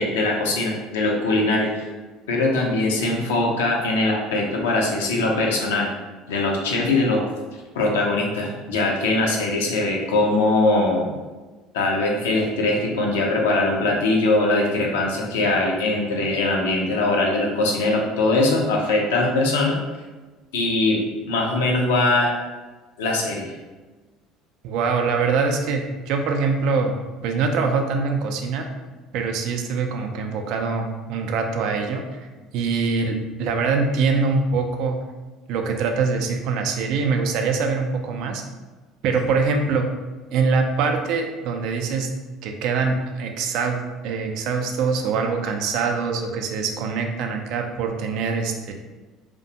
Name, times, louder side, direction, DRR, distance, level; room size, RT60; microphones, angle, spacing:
voice 1, 0.0-1.8 2.3-5.9 6.3-7.3 7.7-11.1 11.7-19.8 20.5-22.3 23.0-23.5, left 2 dB, 80° left, -1 dB, 0.5 m, -21 dB
voice 2, 24.6-26.9 27.2-28.7 29.1-32.3 32.5-35.0 35.5-38.4 39.0-39.9 40.3-42.1 42.4-48.7, right 4 dB, 65° right, 4 dB, 0.3 m, -23 dB
2.5 x 2.1 x 2.7 m, 1.3 s
hypercardioid pair, 65°, 0 cm